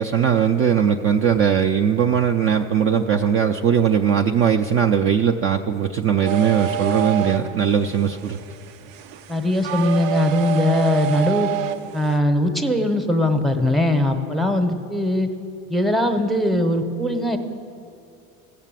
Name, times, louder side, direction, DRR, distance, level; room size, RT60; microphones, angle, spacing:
voice 1, 0.0-8.4, right 8 dB, 35° right, 4 dB, 0.4 m, -19 dB
sound 1, 6.2-12.2, right 12 dB, 90° right, 0.8 m, -28 dB
voice 2, 9.3-11.5 11.9-15.3 15.7-17.4, left 1 dB, ahead, 6 dB, 0.8 m, -20 dB
15.0 x 6.7 x 9.0 m, 2.6 s
supercardioid pair, 120°, 41 cm